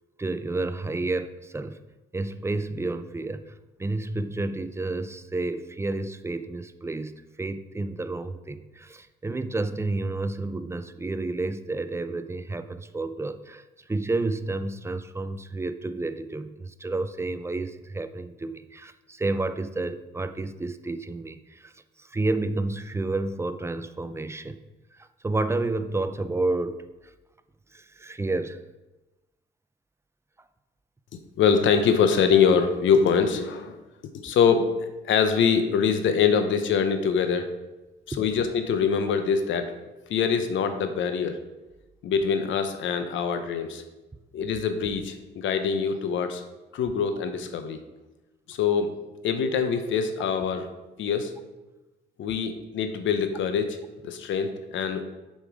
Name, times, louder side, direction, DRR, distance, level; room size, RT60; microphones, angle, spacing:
voice 1, 0.2-1.8 2.1-21.7 22.0-24.6 24.9-26.9 27.7-28.6 38.1-38.2, right 2 dB, 15° right, 11 dB, 0.5 m, -30 dB
voice 2, 31.4-33.8 34.1-34.7 35.0-37.5 38.1-39.8 40.0-41.4 42.0-43.8 44.3-46.4 46.7-47.8 48.5-50.7 51.0-51.3 52.2-55.0, left 6 dB, 75° left, 8 dB, 0.9 m, -24 dB
7.3 x 5.3 x 4.8 m, 1.1 s
cardioid pair, 90°, 20 cm